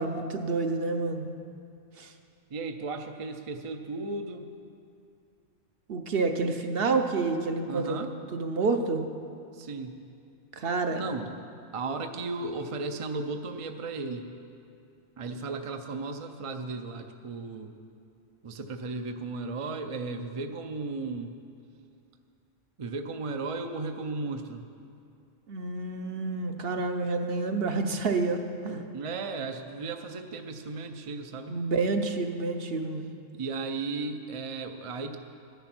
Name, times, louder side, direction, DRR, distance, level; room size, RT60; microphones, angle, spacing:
voice 1, 0.0-1.3 2.0-2.1 5.9-8.0 8.3-9.0 10.5-11.0 25.5-28.9 31.5-33.1, right 3 dB, 55° right, 6 dB, 0.9 m, -29 dB
voice 2, 2.5-4.5 7.7-8.1 9.5-10.0 10.9-11.3 11.7-14.3 15.2-17.7 18.4-21.3 22.8-24.6 28.9-31.6 33.3-35.2, right 3 dB, 40° right, 6 dB, 0.5 m, -35 dB
13.5 x 10.0 x 6.0 m, 2.5 s
omnidirectional pair, 1.3 m